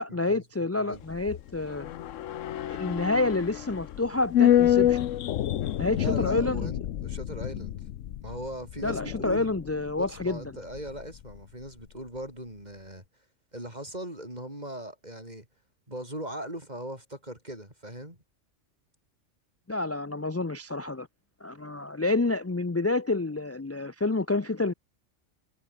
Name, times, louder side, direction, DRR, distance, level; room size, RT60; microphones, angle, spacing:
voice 1, 0.0-1.9 2.7-5.1 5.8-6.7 8.8-10.4 19.7-21.1 21.4-24.7, left 2 dB, 25° left, 0.3 m, -28 dB
sound 1, 0.9-11.4 11.7-11.8, left 11 dB, 85° left, 1.1 m, -28 dB
voice 2, 6.0-7.7 8.2-9.5 10.0-13.0 13.5-15.5 15.9-18.2, right 1 dB, 35° right, 7.6 m, -39 dB
omnidirectional pair, 1.3 m